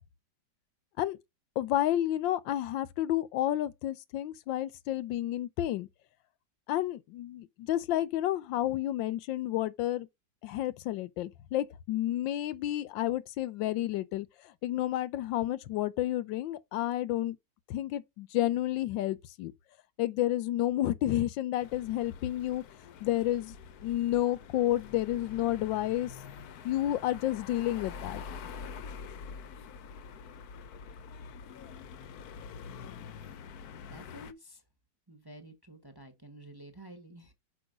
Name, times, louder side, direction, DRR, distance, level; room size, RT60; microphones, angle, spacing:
voice 1, 1.6-5.9 6.7-10.1 10.4-17.4 17.7-19.5 20.0-22.6 23.0-23.5 23.8-26.1 26.6-28.2, left 13 dB, 85° left, 1.4 m, -30 dB
sound 1, 21.6-34.3, left 6 dB, 65° left, 1.1 m, -46 dB
voice 2, 33.9-34.6 35.1-37.3, right 1 dB, 15° right, 0.9 m, -50 dB
6.2 x 5.2 x 5.0 m
omnidirectional pair, 2.0 m